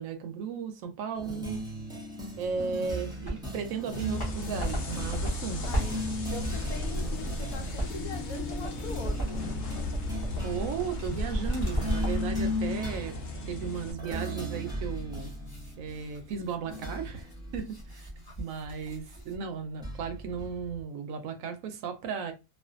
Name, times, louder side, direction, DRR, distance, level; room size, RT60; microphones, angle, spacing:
voice 1, 0.0-1.7 2.4-5.7 10.4-13.2 13.5-15.3 15.8-18.1 18.4-22.3, right 6 dB, 70° right, 0.9 m, -35 dB
sound 1, 1.1-19.0 19.8-20.8, left 1 dB, 5° right, 0.3 m, -37 dB
sound 2, 3.0-3.6 3.9-12.4 12.9-13.0 14.5-19.4, equal, 20° left, 0.8 m, -36 dB
sound 3, 3.9-13.9, left 2 dB, 55° left, 0.7 m, -37 dB
voice 2, 5.7-6.0 6.3-9.5 13.7-13.8, left 4 dB, 80° left, 1.0 m, -42 dB
2.4 x 2.4 x 2.4 m
omnidirectional pair, 1.5 m